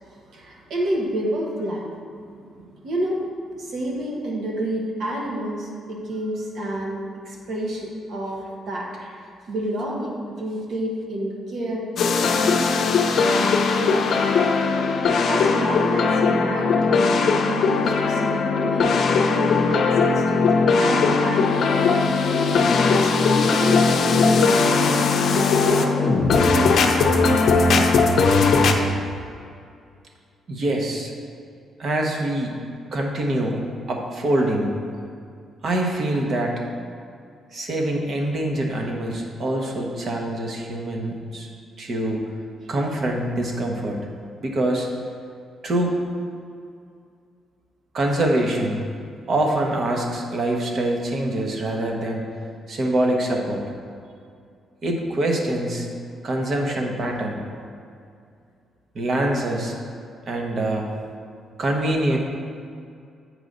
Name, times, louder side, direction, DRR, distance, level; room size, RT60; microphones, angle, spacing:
voice 1, 0.3-1.8 2.2-3.2 3.6-11.9 12.4-14.1 15.3-16.9 17.2-19.0 19.3-22.0 22.5-25.1 25.4-28.5 28.8-29.0, right 1 dB, 65° right, -2 dB, 1.3 m, -29 dB
sound 1, 12.0-28.7, left 4 dB, 60° left, 0.6 m, -19 dB
voice 2, 30.5-31.1 31.8-32.6 32.9-33.6 33.9-34.7 35.6-36.6 37.5-41.5 41.8-42.3 42.7-44.0 44.4-44.9 45.6-46.0 47.9-48.9 49.3-52.3 52.7-53.6 54.8-55.9 56.2-57.4 58.9-59.7 60.3-60.9 61.6-62.2, right 1 dB, 50° right, 1 dB, 1.1 m, -24 dB
7.9 x 4.8 x 3.9 m, 2.3 s
cardioid pair, 90°, 0 cm